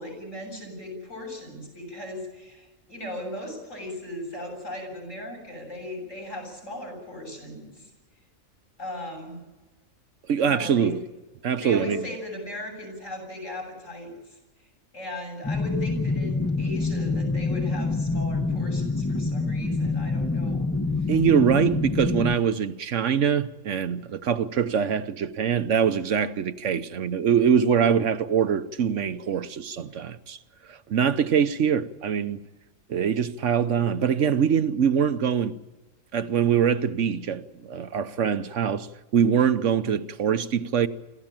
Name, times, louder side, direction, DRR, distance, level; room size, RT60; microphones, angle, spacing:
voice 1, 0.0-7.9 8.8-9.4 10.4-10.9 11.6-14.4 14.9-20.7 21.0-21.1, left 1 dB, 70° left, 7.6 m, -37 dB
voice 2, 10.3-11.0 11.4-12.1 21.1-30.4 30.7-32.4 32.9-35.6 36.1-38.9 39.1-40.9, right 7 dB, 70° right, 1.2 m, -23 dB
sound 1, 15.4-22.3, left 3 dB, 15° left, 0.7 m, -26 dB
26.0 x 14.0 x 8.9 m
omnidirectional pair, 1.4 m